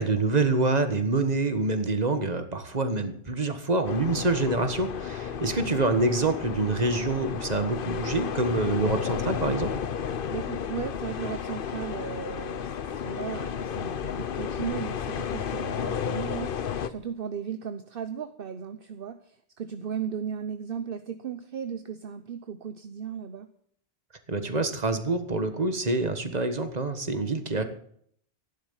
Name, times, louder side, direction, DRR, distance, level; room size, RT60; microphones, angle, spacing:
voice 1, 0.0-9.7 24.3-27.6, right 3 dB, 40° right, 8 dB, 1.6 m, -26 dB
sound 1, 3.8-16.9, left 8 dB, 60° left, 0.9 m, -32 dB
voice 2, 10.3-23.5, right 7 dB, 60° right, 9 dB, 1.0 m, -36 dB
13.5 x 11.5 x 7.3 m, 0.65 s
omnidirectional pair, 1.1 m